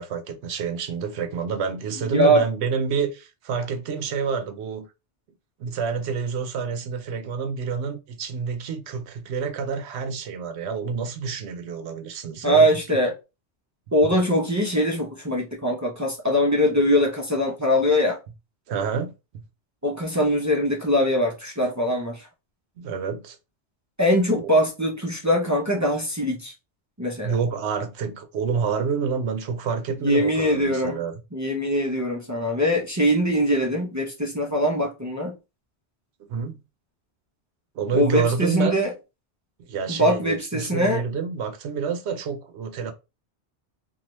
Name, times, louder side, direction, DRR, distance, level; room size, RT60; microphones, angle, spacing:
voice 1, 0.0-4.8 5.6-12.7 18.7-19.1 22.8-23.4 27.2-31.1 36.3-36.6 37.7-38.8 39.7-42.9, right 6 dB, 75° right, 0.8 m, -28 dB
voice 2, 2.1-2.4 12.4-13.1 13.9-18.2 19.8-22.3 24.0-26.5 27.0-27.4 30.0-31.0 31.3-35.4 37.9-38.9 39.9-41.0, equal, 30° right, 0.3 m, -22 dB
2.6 x 2.3 x 3.0 m
omnidirectional pair, 1.1 m